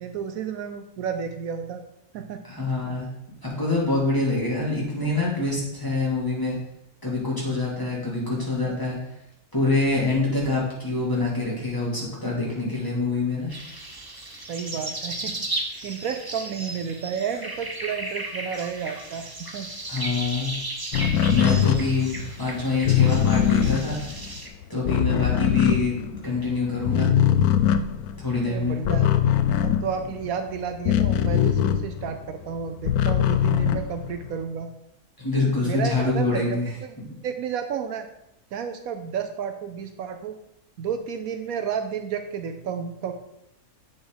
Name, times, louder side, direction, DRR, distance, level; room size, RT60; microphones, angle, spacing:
voice 1, 0.0-1.8 2.1-2.4 8.6-8.8 14.5-15.5 15.8-19.7 28.4-29.1 29.6-34.7 35.6-36.9 37.2-38.1 38.5-40.3 40.8-43.1, right 7 dB, 75° right, 7 dB, 1.0 m, -31 dB
voice 2, 2.4-3.1 3.4-6.6 7.0-9.0 9.5-13.5 19.9-20.5 21.3-24.0 24.7-27.1 28.2-28.8 35.2-36.7, left 3 dB, 15° left, -6 dB, 2.9 m, -25 dB
sound 1, 13.5-24.5, right 1 dB, 20° right, 0.8 m, -35 dB
sound 2, 20.9-26.5 26.8-32.3 32.6-34.4, left 9 dB, 85° left, 1.1 m, -22 dB
8.1 x 6.4 x 3.9 m, 0.84 s
omnidirectional pair, 1.5 m